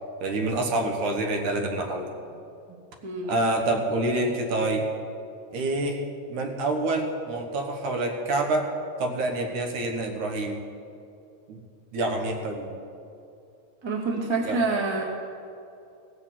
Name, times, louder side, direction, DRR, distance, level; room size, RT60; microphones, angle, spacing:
voice 1, 0.2-2.1 3.3-4.9 5.5-8.7 9.0-10.6 11.5-11.6 11.9-12.7 14.4-14.6, right 2 dB, 75° right, 3 dB, 2.6 m, -27 dB
voice 2, 3.0-3.4 13.8-15.0, right 3 dB, 15° right, -2 dB, 1.1 m, -27 dB
17.0 x 7.0 x 7.4 m, 2.6 s
omnidirectional pair, 3.6 m